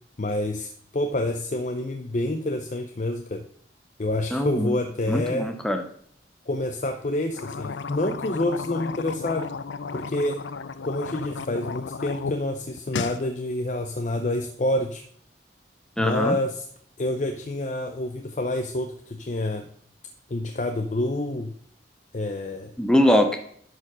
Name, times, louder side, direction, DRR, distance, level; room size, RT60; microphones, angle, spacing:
voice 1, 0.2-3.5 4.0-5.5 6.5-9.5 9.9-10.4 10.8-15.0 16.0-16.7 17.0-19.7 20.3-21.5 22.1-22.7, left 1 dB, 40° left, 6 dB, 0.5 m, -28 dB
voice 2, 4.3-4.8 5.1-5.8 16.0-16.4 22.8-23.4, equal, 5° left, 5 dB, 0.6 m, -22 dB
sound 1, 7.3-12.4 12.7-13.2, left 5 dB, 85° left, 0.5 m, -34 dB
11.0 x 4.5 x 5.5 m, 0.63 s
head